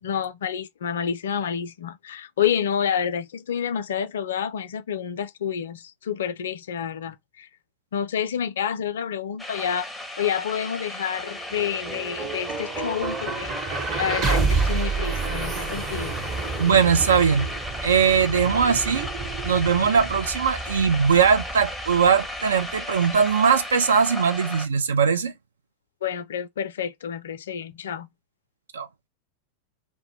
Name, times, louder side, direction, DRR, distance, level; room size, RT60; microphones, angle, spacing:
voice 1, 0.0-7.5 7.9-9.9 10.2-16.2 26.0-28.1, left 8 dB, 60° left, 0.4 m, -29 dB
sound 1, 9.4-24.7, left 1 dB, 5° left, 0.6 m, -35 dB
sound 2, 11.2-23.3, right 4 dB, 30° right, 0.9 m, -30 dB
voice 2, 16.6-17.5 17.8-19.1 19.4-25.3 28.7-28.9, right 6 dB, 65° right, 0.4 m, -20 dB
2.1 x 2.1 x 3.1 m
figure-of-eight pair, 90°, 0 cm